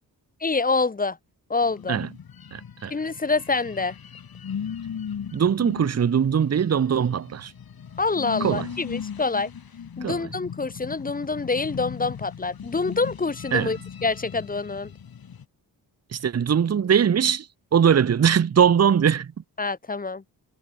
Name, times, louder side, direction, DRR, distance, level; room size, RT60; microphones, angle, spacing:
voice 1, 0.4-1.2 1.5-2.0 2.9-4.0 8.0-9.5 10.0-14.9 19.6-20.2, left 3 dB, 20° left, 0.8 m, -26 dB
sound 1, 1.6-15.4, left 7 dB, 55° left, 2.6 m, -38 dB
voice 2, 2.5-2.9 5.3-7.5 8.4-8.7 10.0-10.3 13.5-13.7 16.1-17.5 17.7-19.3, right 8 dB, 35° right, 0.8 m, -21 dB
cardioid pair, 100°, 42 cm